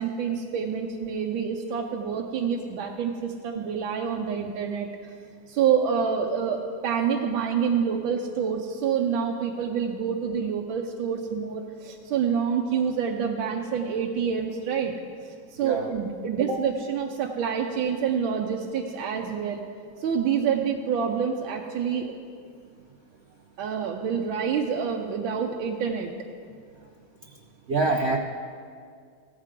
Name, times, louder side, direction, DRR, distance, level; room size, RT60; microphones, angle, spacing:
voice 1, 0.0-5.1 5.5-14.9 15.2-19.6 20.0-22.1 23.6-26.1, right 7 dB, 90° right, 1 dB, 1.5 m, -27 dB
voice 2, 27.7-28.2, right 3 dB, 75° right, 0 dB, 0.6 m, -25 dB
16.0 x 14.0 x 3.7 m, 2.2 s
omnidirectional pair, 2.1 m